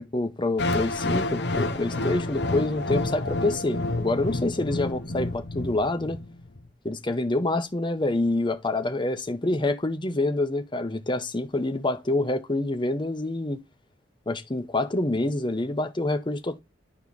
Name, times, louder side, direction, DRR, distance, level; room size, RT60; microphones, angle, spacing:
voice 1, 0.0-6.2 6.8-13.6 14.3-16.6, left 2 dB, 25° left, 0.9 m, -27 dB
sound 1, 0.6-6.6, left 2 dB, 65° left, 1.1 m, -29 dB
11.5 x 4.4 x 3.6 m
head